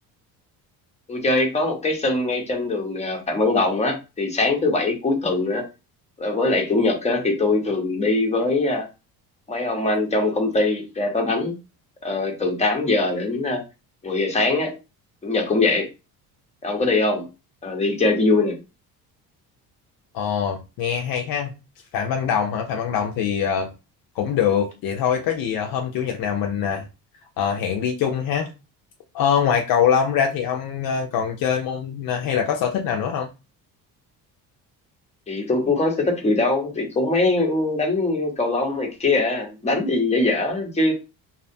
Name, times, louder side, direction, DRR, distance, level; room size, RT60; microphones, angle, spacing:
voice 1, 1.1-5.6 6.2-8.9 9.5-11.6 12.0-13.6 14.0-14.8 15.2-15.9 16.6-17.3 17.6-18.6 35.3-40.9, left 2 dB, 15° left, 0.8 m, -22 dB
voice 2, 20.1-21.5 21.9-23.7 24.2-26.8 27.4-28.5 29.1-33.3, left 8 dB, 65° left, 0.5 m, -23 dB
2.6 x 2.0 x 2.6 m
cardioid pair, 105°, 38 cm